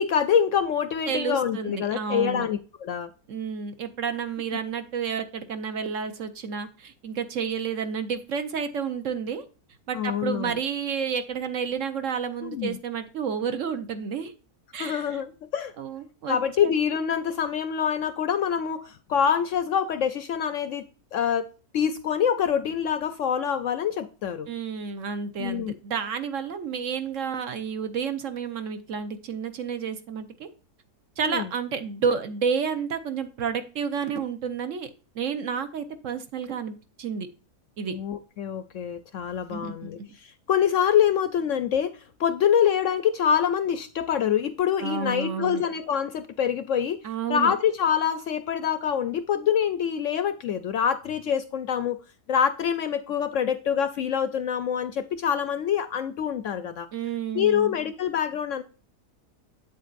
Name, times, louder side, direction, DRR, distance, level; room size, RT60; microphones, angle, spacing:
voice 1, 0.0-3.1 9.9-10.6 12.4-12.8 14.8-15.7 16.3-20.8 21.1-21.5 21.7-24.5 25.4-25.7 31.2-31.5 37.9-41.9 42.2-47.0 47.3-52.0 52.3-56.9 57.3-58.6, left 8 dB, 70° left, 12 dB, 0.8 m, -25 dB
voice 2, 1.1-2.5 3.3-9.4 9.9-14.3 14.7-15.2 15.8-16.7 24.5-30.5 31.2-34.9 35.1-37.3 37.8-38.0 39.5-39.9 44.8-45.6 47.0-47.5 56.9-57.7, right 6 dB, 60° right, 9 dB, 1.1 m, -30 dB
8.2 x 7.7 x 2.5 m, 0.35 s
omnidirectional pair, 1.7 m